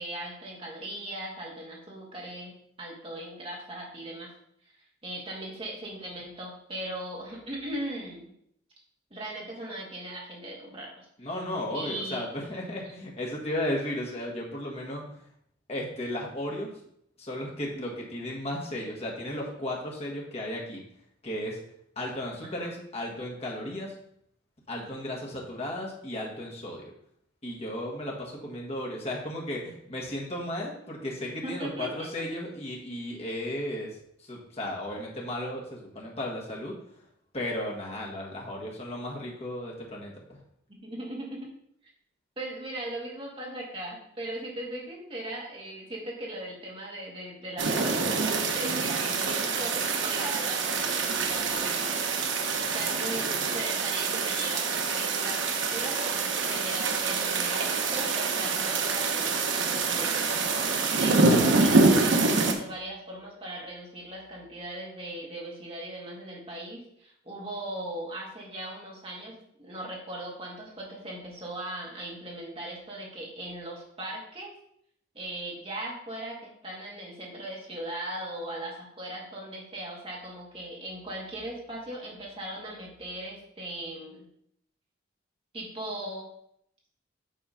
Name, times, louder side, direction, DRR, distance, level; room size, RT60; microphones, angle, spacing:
voice 1, 0.0-4.3 5.0-8.3 9.1-11.1 11.7-12.3 22.6-22.7 31.4-32.1 40.8-41.5 42.4-52.1 52.7-74.5 75.1-84.3 85.5-86.3, right 1 dB, 25° right, -3 dB, 1.9 m, -39 dB
voice 2, 11.2-15.3 15.7-16.8 17.2-20.8 21.2-21.6 22.0-24.0 24.7-26.8 27.4-36.8 37.3-40.4, left 1 dB, 30° left, -2 dB, 1.6 m, -35 dB
sound 1, 47.6-62.5, right 3 dB, 65° right, 0.9 m, -26 dB
7.7 x 3.7 x 5.6 m, 0.70 s
head